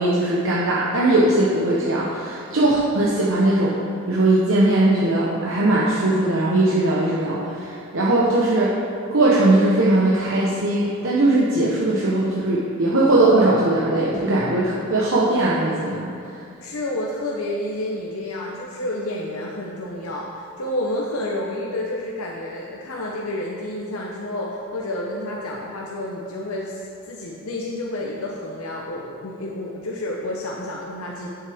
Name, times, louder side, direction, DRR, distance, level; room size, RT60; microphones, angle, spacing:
voice 1, 0.0-3.8 4.1-8.7 9.1-16.4, right 2 dB, 65° right, -6 dB, 1.0 m, -19 dB
voice 2, 16.6-31.3, left 1 dB, 80° left, -2 dB, 0.8 m, -30 dB
9.8 x 7.2 x 3.5 m, 2.6 s
head